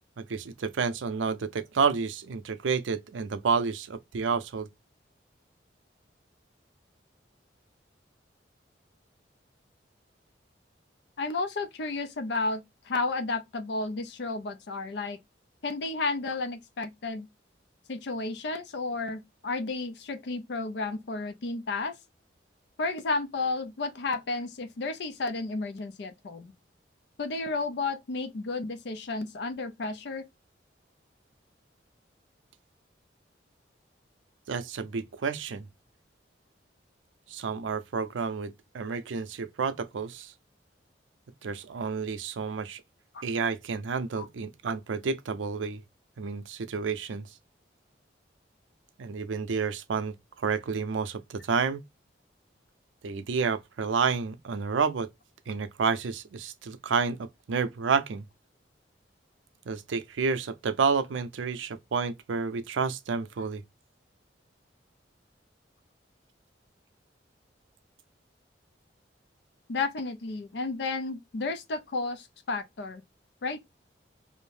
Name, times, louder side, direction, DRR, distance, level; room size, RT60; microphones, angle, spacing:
voice 1, 0.2-4.7 34.5-35.7 37.3-40.3 41.4-42.8 43.2-45.8 46.2-47.3 49.0-50.1 50.4-51.8 53.0-55.1 55.5-58.2 59.7-63.6, right 5 dB, 85° right, 0.5 m, -30 dB
voice 2, 11.2-15.2 15.6-17.3 17.9-21.9 22.8-26.5 27.2-30.2 43.1-43.3 44.2-44.3 69.7-73.0 73.4-73.6, left 3 dB, 65° left, 0.4 m, -32 dB
2.6 x 2.0 x 3.1 m
head